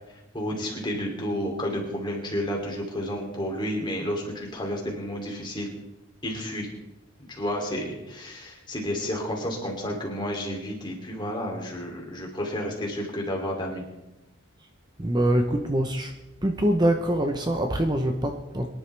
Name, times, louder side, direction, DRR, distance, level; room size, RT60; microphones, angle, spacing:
voice 1, 0.3-5.7 6.2-6.7 7.2-13.9, equal, 20° left, 0 dB, 2.9 m, -31 dB
voice 2, 15.0-16.1 16.4-18.7, right 1 dB, 20° right, 5 dB, 0.8 m, -24 dB
23.0 x 11.0 x 3.4 m, 0.97 s
head